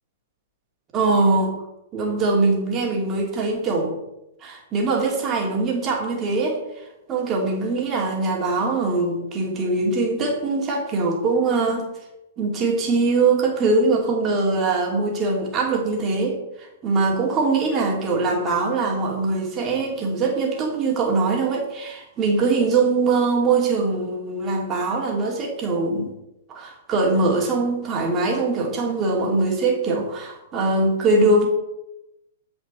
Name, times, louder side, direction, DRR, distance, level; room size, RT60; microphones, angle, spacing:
voice 1, 0.9-1.5 1.9-4.0 4.4-6.8 7.1-11.8 12.4-26.1 26.5-31.5, right 3 dB, 30° right, -1 dB, 2.9 m, -22 dB
15.0 x 5.3 x 4.4 m, 0.91 s
hypercardioid pair, 110°, 0 cm